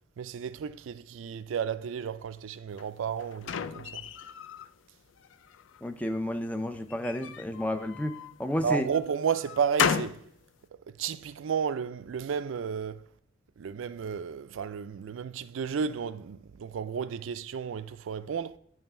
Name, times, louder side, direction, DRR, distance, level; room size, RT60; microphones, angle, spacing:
voice 1, 0.2-4.0 8.6-10.2 11.0-13.0 13.6-18.6, right 7 dB, 85° right, 0.4 m, -32 dB
sound 1, 2.8-4.7 5.2-5.9 6.9-8.4 8.9-10.3, left 7 dB, 75° left, 0.4 m, -33 dB
voice 2, 5.8-8.9, left 1 dB, 10° left, 0.4 m, -31 dB
8.9 x 3.3 x 5.4 m
head